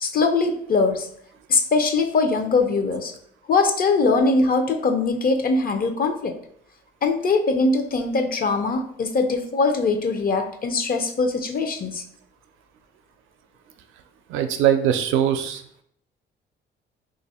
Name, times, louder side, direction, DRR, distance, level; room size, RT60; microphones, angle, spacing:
voice 1, 0.0-1.1 1.5-3.1 3.5-6.3 7.0-12.0, left 3 dB, 45° left, 6 dB, 0.6 m, -21 dB
voice 2, 14.3-15.6, right 10 dB, 90° right, 7 dB, 0.4 m, -21 dB
2.6 x 2.5 x 4.2 m, 0.67 s
cardioid pair, 90°, 20 cm